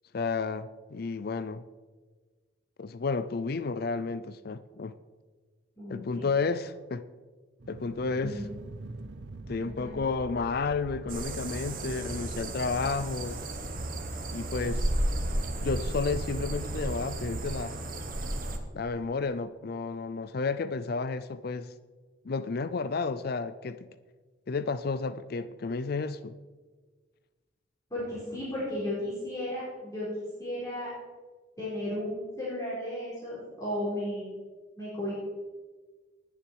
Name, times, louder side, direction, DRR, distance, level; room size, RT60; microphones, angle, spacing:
voice 1, 0.1-1.6 2.8-4.9 5.9-7.0 7.7-8.4 9.5-13.4 14.3-14.9 15.6-17.8 18.7-21.7 22.2-23.9 24.5-26.3, left 4 dB, 50° left, 13 dB, 0.4 m, -32 dB
voice 2, 5.8-6.3 8.2-8.5 9.6-10.0 27.9-30.1 30.4-30.9 31.6-34.3 34.8-35.1, left 1 dB, 15° left, -9 dB, 4.3 m, -34 dB
sound 1, 7.6-17.6, right 2 dB, 60° right, 0.7 m, -42 dB
sound 2, 11.1-18.6, right 1 dB, 45° right, 1.2 m, -34 dB
19.0 x 7.1 x 4.6 m, 1.4 s
head